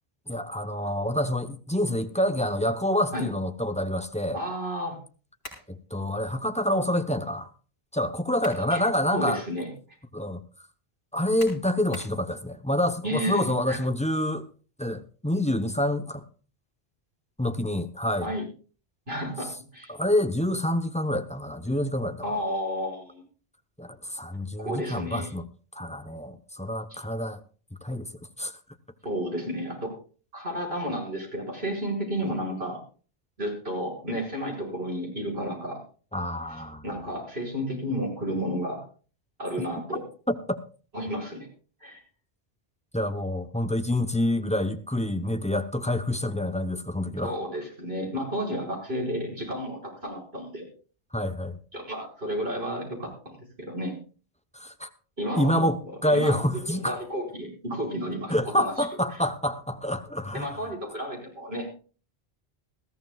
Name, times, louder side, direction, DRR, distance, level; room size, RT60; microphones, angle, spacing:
voice 1, 0.3-4.4 5.7-7.5 7.9-9.4 10.1-10.4 11.1-14.5 14.8-16.3 17.4-18.3 19.9-22.4 23.8-25.5 25.8-27.4 27.8-28.1 28.4-28.5 36.1-36.8 39.6-39.7 40.3-40.6 42.9-47.3 51.1-51.6 54.5-54.9 55.3-57.0 58.3-60.6, left 1 dB, 5° left, 0.7 m, -27 dB
voice 2, 4.3-5.0 8.7-8.8 9.1-9.7 13.0-13.8 18.2-18.4 19.1-19.9 22.2-23.2 24.6-25.3 26.9-27.0 29.0-29.9 30.3-32.8 33.4-35.8 36.5-38.8 39.4-40.1 40.9-41.5 41.8-42.0 47.2-50.7 51.7-53.9 55.2-56.4 56.7-58.9 60.3-61.7, equal, 70° right, 5.8 m, -32 dB
sound 1, 5.4-5.7 8.1-8.7 9.2-9.3 11.4-12.2, left 1 dB, 65° left, 5.5 m, -43 dB
20.0 x 15.0 x 2.4 m
omnidirectional pair, 1.1 m